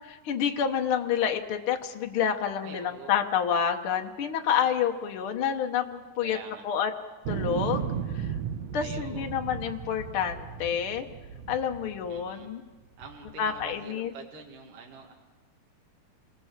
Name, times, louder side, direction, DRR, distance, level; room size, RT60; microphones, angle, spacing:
voice 1, 0.2-6.4 6.6-6.9 7.3-8.3 8.7-11.1 11.5-12.6 13.4-14.1, left 8 dB, 85° left, 4 dB, 1.1 m, -28 dB
voice 2, 2.6-3.1 6.2-6.7 8.8-9.3 12.1-12.5 13.0-15.1, right 4 dB, 60° right, 0 dB, 3.3 m, -45 dB
sound 1, 7.3-12.5 13.0-13.8, right 8 dB, 80° right, 1.6 m, -35 dB
28.0 x 19.5 x 7.4 m, 1.2 s
omnidirectional pair, 4.4 m